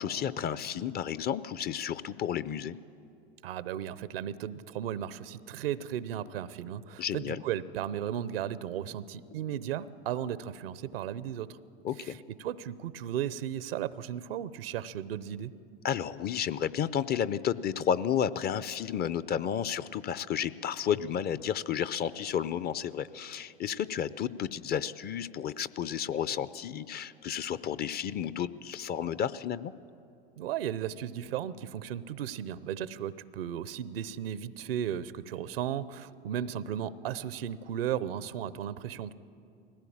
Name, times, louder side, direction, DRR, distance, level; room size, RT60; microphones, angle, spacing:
voice 1, 0.0-2.8 7.0-7.4 11.8-12.2 15.8-29.7, left 9 dB, 35° left, 16 dB, 0.6 m, -32 dB
voice 2, 3.4-11.6 12.0-12.1 12.4-15.5 30.4-39.1, right 10 dB, 75° right, 17 dB, 0.7 m, -35 dB
20.0 x 16.5 x 8.7 m, 2.7 s
hypercardioid pair, 85°, 29 cm